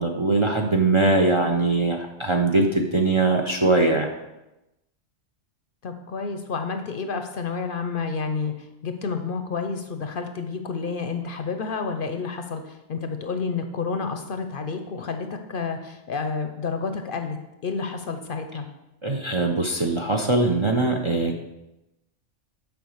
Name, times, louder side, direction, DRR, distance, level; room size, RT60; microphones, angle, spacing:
voice 1, 0.0-4.1 19.0-21.4, right 2 dB, 35° right, 3 dB, 0.5 m, -21 dB
voice 2, 5.8-17.4 17.6-18.7, left 5 dB, 55° left, 7 dB, 0.7 m, -30 dB
7.0 x 4.8 x 6.4 m, 0.95 s
omnidirectional pair, 1.2 m